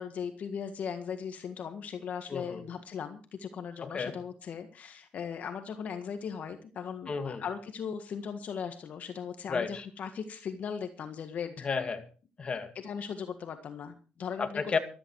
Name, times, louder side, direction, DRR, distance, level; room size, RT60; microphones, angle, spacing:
voice 1, 0.0-11.7 12.8-14.6, left 7 dB, 60° left, 8 dB, 1.7 m, -38 dB
voice 2, 2.3-2.6 3.8-4.1 7.1-7.4 9.5-9.9 11.6-12.0 12.4-12.7 14.4-14.8, left 5 dB, 40° left, 8 dB, 2.3 m, -32 dB
15.0 x 13.5 x 4.7 m, 0.36 s
cardioid pair, 100°, 3 cm